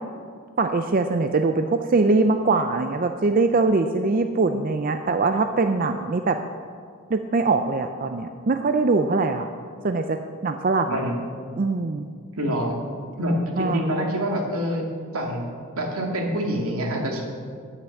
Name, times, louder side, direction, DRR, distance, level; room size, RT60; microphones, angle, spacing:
voice 1, 0.6-6.4 7.1-9.5 9.8-11.0 11.6-12.0 13.6-13.8, right 3 dB, 40° right, 7 dB, 0.4 m, -22 dB
voice 2, 12.3-12.8 13.2-14.8 15.1-15.4 15.8-17.2, equal, 80° right, 0 dB, 2.3 m, -26 dB
10.0 x 9.9 x 7.2 m, 2.1 s
head